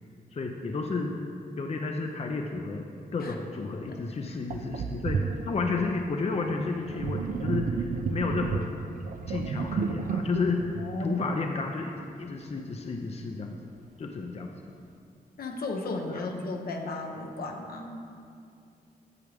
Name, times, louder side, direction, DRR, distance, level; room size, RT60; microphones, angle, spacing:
voice 1, 0.3-1.1 1.6-8.7 9.3-13.6 14.0-14.5 16.1-16.3, left 3 dB, 40° left, 2 dB, 0.6 m, -32 dB
Sink (filling or washing), 3.8-3.9 4.5-11.8, right 5 dB, 55° right, 0.4 m, -33 dB
voice 2, 10.8-11.3 15.4-18.0, left 2 dB, 70° left, 2 dB, 0.9 m, -35 dB
8.4 x 6.9 x 3.4 m, 2.5 s
cardioid pair, 60°, 16 cm